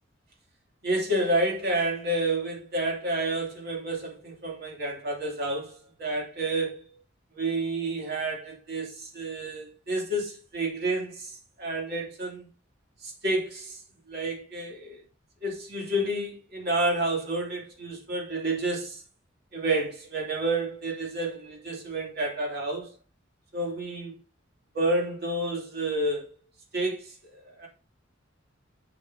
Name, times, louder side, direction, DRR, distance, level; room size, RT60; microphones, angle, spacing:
voice 1, 0.8-6.8 7.3-12.5 13.0-13.8 14.1-15.0 15.4-19.0 19.5-22.9 23.5-24.2 24.7-26.3 26.7-27.7, right 2 dB, 55° right, 2.7 m, -30 dB
7.8 x 7.0 x 2.7 m
head